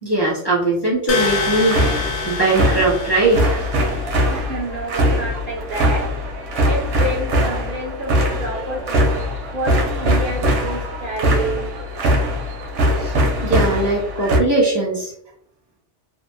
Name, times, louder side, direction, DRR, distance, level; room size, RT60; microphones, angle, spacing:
voice 1, 0.0-3.7 13.0-15.1, right 2 dB, 25° left, -6 dB, 0.5 m, -20 dB
sound 1, 1.1-4.0, left 4 dB, 70° left, 0.9 m, -26 dB
sound 2, 1.2-14.4, equal, 80° right, 0.9 m, -21 dB
voice 2, 4.3-6.1 6.6-9.1 9.5-11.6, right 1 dB, 60° right, -1 dB, 0.6 m, -28 dB
2.7 x 2.1 x 2.5 m, 0.72 s
omnidirectional pair, 1.2 m